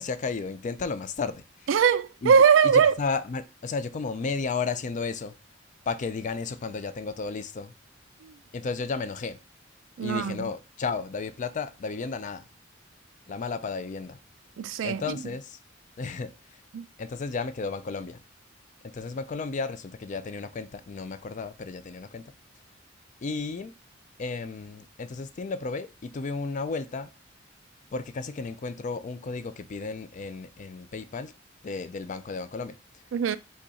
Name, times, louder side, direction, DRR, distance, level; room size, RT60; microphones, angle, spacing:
voice 1, 0.0-1.4 2.2-2.3 2.6-5.4 5.9-7.7 8.5-9.4 10.0-12.4 13.3-14.2 14.8-15.6 16.0-16.3 17.0-18.2 18.8-22.3 23.2-23.7 24.2-27.1 27.9-31.3 31.6-32.8, left 4 dB, 40° left, 0.4 m, -33 dB
voice 2, 1.7-3.0 10.0-10.5 14.6-15.2 16.7-16.8 33.1-33.4, right 6 dB, 75° right, 0.4 m, -21 dB
5.3 x 2.4 x 4.0 m
head